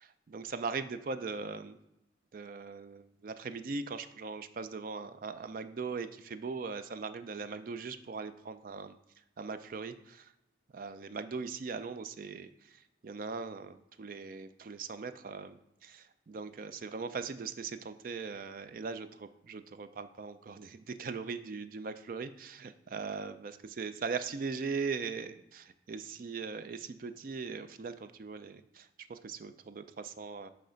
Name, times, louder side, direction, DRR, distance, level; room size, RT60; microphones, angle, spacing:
voice 1, 0.3-1.8 2.3-9.0 9.4-10.3 10.7-30.5, right 4 dB, 50° right, 11 dB, 0.4 m, -40 dB
7.8 x 3.3 x 5.1 m, 0.89 s
head